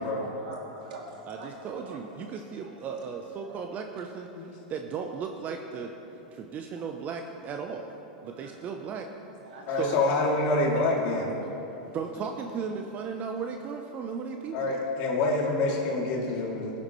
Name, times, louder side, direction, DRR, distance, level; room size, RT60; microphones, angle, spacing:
voice 1, 0.0-3.0 3.4-3.6 7.0-7.1 8.3-8.9 9.3-10.0 10.7-12.0, right 3 dB, 70° right, -3 dB, 2.8 m, -45 dB
voice 2, 1.3-5.9 6.3-7.9 8.2-9.1 9.7-10.0 11.9-14.8, right 6 dB, 35° right, 4 dB, 0.8 m, -36 dB
voice 3, 9.7-11.2 14.5-16.7, left 2 dB, 55° left, -3 dB, 2.8 m, -26 dB
18.5 x 9.7 x 3.2 m, 3.0 s
hypercardioid pair, 100°, 4 cm